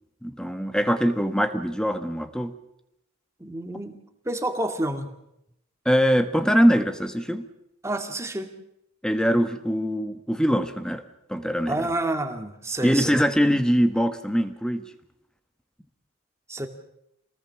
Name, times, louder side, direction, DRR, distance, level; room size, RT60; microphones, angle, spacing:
voice 1, 0.2-2.5 5.8-7.4 9.0-11.0 11.3-11.9 12.8-14.8, equal, 5° left, 9 dB, 1.4 m, -22 dB
voice 2, 3.4-4.0 4.2-5.2 7.8-8.5 11.7-13.2 16.5-16.7, right 1 dB, 15° right, 6 dB, 2.1 m, -29 dB
26.5 x 19.0 x 7.3 m, 0.82 s
head